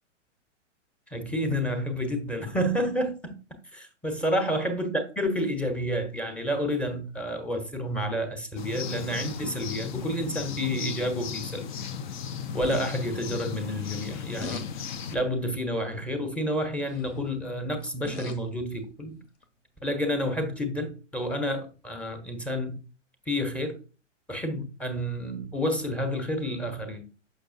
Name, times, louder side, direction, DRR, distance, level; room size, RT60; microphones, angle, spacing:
voice 1, 1.1-3.4 3.7-11.7 12.5-14.7 15.1-19.2 19.8-22.8 23.3-23.8 24.3-27.0, equal, 5° left, 0.9 m, -29 dB
sound 1, 8.6-15.2, left 7 dB, 40° left, 0.6 m, -36 dB
sound 2, 12.6-12.9 14.4-14.7 15.1-15.4 16.9-17.2 17.8-18.5 19.4-19.5, left 3 dB, 60° left, 1.2 m, -38 dB
6.6 x 5.8 x 2.6 m
figure-of-eight pair, 110°, 38 cm